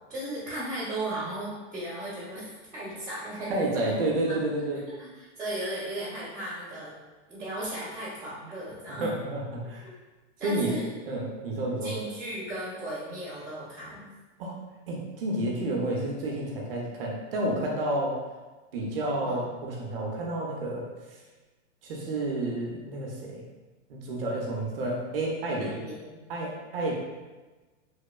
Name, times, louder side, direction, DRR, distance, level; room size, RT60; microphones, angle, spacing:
voice 1, 0.1-3.7 5.0-6.9 7.3-9.1 10.4-10.9 11.8-14.1 19.2-19.5 25.6-26.2, right 1 dB, 5° left, -20 dB, 0.4 m, -36 dB
voice 2, 3.5-4.8 8.9-9.9 10.4-10.8 11.1-12.0 14.4-14.6 14.9-18.2 18.7-21.2 21.8-23.4 23.9-25.8 26.3-26.9, right 1 dB, 50° right, -2 dB, 0.5 m, -30 dB
2.9 x 2.0 x 2.2 m, 1.2 s
supercardioid pair, 175°, 37 cm